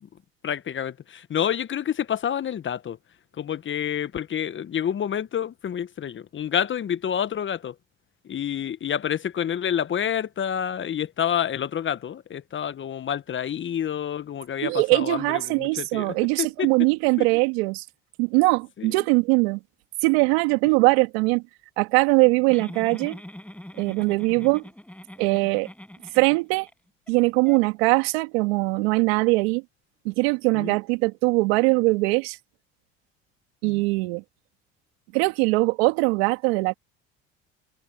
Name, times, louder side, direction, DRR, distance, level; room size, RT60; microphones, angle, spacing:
voice 1, 0.4-3.0 3.4-7.7 8.2-16.7 17.2-17.3 18.8-19.0 24.4-24.5 30.5-30.8 33.6-33.8, left 9 dB, 40° left, 1.1 m, -28 dB
voice 2, 14.6-17.8 18.2-19.6 20.0-21.4 21.8-23.2 23.8-24.6 25.2-25.7 26.1-26.7 27.1-29.6 30.0-32.4 33.6-34.2 35.1-36.7, right 27 dB, 80° right, 2.5 m, -21 dB
Giggle, 22.5-26.7 27.1-27.2 27.5-27.6, left 1 dB, 5° left, 7.8 m, -42 dB
hypercardioid pair, 70°, 30 cm